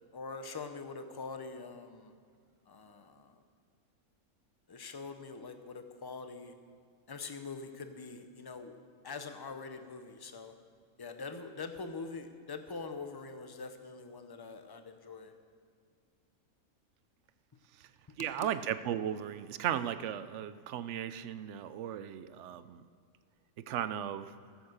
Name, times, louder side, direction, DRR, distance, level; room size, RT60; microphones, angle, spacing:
voice 1, 0.1-2.1 2.7-3.2 4.7-6.5 7.1-8.7 9.0-10.5 11.0-15.3 18.4-18.5, left 4 dB, 25° left, 7 dB, 0.5 m, -44 dB
voice 2, 18.2-22.8 23.6-24.3, right 10 dB, 65° right, 13 dB, 0.8 m, -36 dB
15.0 x 7.8 x 6.4 m, 2.2 s
omnidirectional pair, 1.5 m